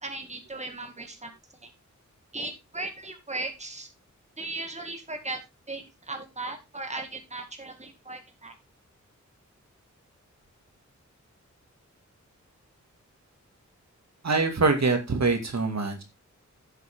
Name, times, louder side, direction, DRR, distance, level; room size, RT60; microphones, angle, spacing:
voice 1, 0.0-1.3 1.6-1.7 2.3-3.9 4.4-5.4 5.7-8.5, right 2 dB, 20° right, 5 dB, 2.2 m, -37 dB
voice 2, 14.2-16.0, right 3 dB, 60° right, 5 dB, 2.2 m, -24 dB
11.0 x 8.1 x 3.6 m, 0.24 s
wide cardioid pair, 95°, 30 cm